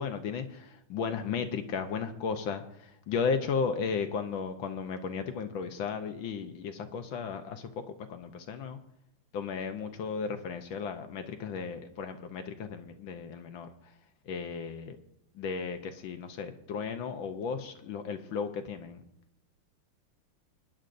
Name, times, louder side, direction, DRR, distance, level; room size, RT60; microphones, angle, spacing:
voice 1, 0.0-7.8 8.1-8.8 9.3-13.7 14.3-15.0 15.3-19.0, left 5 dB, 70° left, 7 dB, 1.6 m, -35 dB
25.0 x 10.0 x 2.6 m, 0.78 s
omnidirectional pair, 2.3 m